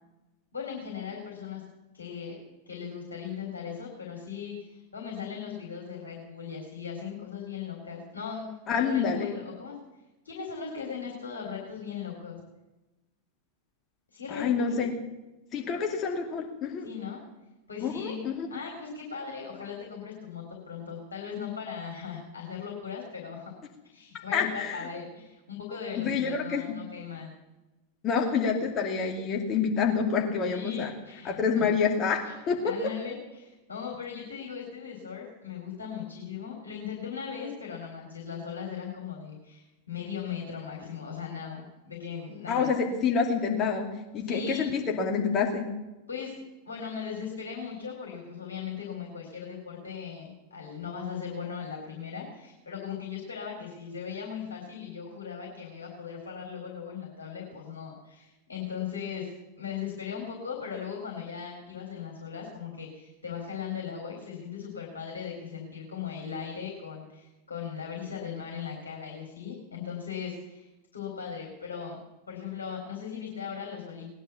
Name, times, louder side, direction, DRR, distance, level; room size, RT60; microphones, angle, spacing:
voice 1, 0.5-1.6 1.9-2.4 2.7-8.4 8.7-9.8 10.2-12.4 14.1-14.8 16.8-17.2 17.7-18.2 18.5-23.5 23.8-27.3 30.5-31.7 32.2-32.3 32.6-42.7 44.2-44.7 46.1-46.4 46.7-59.3 59.6-72.0 72.3-74.1, left 7 dB, 70° left, -1 dB, 3.6 m, -38 dB
voice 2, 8.7-9.3 14.3-14.9 15.5-16.9 17.8-18.5 24.3-24.9 26.0-26.6 28.0-30.9 31.2-32.7 42.5-43.9 44.1-45.7, left 6 dB, 30° left, 2 dB, 2.4 m, -27 dB
19.0 x 10.5 x 7.1 m, 1.0 s
figure-of-eight pair, 90°, 0 cm